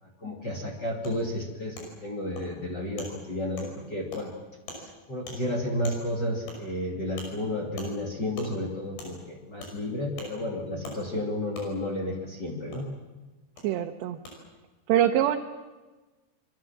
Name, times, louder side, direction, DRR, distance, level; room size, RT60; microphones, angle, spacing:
voice 1, 0.0-4.3 4.8-12.9, left 1 dB, 30° left, 0 dB, 2.8 m, -32 dB
Wood, 1.0-1.1 1.8-1.9 2.4-2.5 3.0-3.1 3.6-3.7 4.1-4.2 4.7-4.8 5.3-5.4 5.8-6.0 6.5-6.6 7.2-7.3 7.8-7.9 8.4-8.5 9.0-9.1 9.6-9.7 10.2-10.3 10.8-11.0 11.5-11.7 12.7-12.8 13.6-13.7 14.2-14.3, left 2 dB, 75° left, 8.0 m, -41 dB
voice 2, 13.6-14.2 14.9-15.4, right 11 dB, 85° right, 3 dB, 3.2 m, -24 dB
26.0 x 22.5 x 7.4 m, 1.2 s
omnidirectional pair, 4.9 m